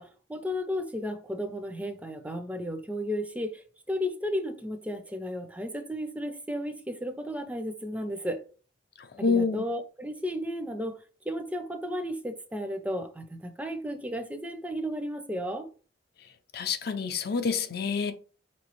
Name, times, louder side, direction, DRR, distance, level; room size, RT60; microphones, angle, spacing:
voice 1, 0.0-8.4 9.2-15.7, equal, 10° right, 0.4 m, -34 dB
voice 2, 9.0-9.6 16.5-18.1, left 5 dB, 60° left, 0.5 m, -27 dB
4.4 x 3.0 x 3.0 m
head